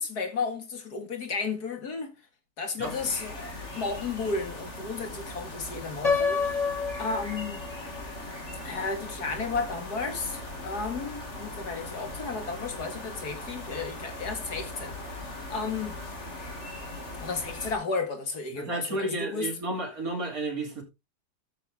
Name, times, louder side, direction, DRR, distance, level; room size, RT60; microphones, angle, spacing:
voice 1, 0.0-2.1 2.6-6.7 7.0-7.6 8.6-16.0 17.2-19.6, left 4 dB, 65° left, 2.6 m, -33 dB
sound 1, 2.8-17.7, left 1 dB, 40° left, 2.9 m, -39 dB
Piano, 6.0-8.0, left 5 dB, 20° left, 2.4 m, -28 dB
voice 2, 18.6-20.8, right 2 dB, 55° right, 4.1 m, -32 dB
13.5 x 6.6 x 3.7 m
omnidirectional pair, 1.8 m